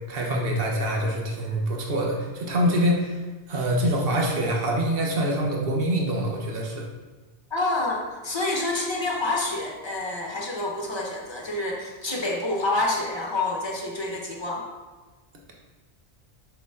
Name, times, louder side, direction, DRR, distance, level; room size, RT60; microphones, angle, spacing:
voice 1, 0.1-3.2 3.5-6.9, equal, 55° right, -1 dB, 1.3 m, -25 dB
voice 2, 7.5-14.6, left 2 dB, 25° left, -1 dB, 1.1 m, -28 dB
6.9 x 6.0 x 3.7 m, 1.3 s
omnidirectional pair, 1.2 m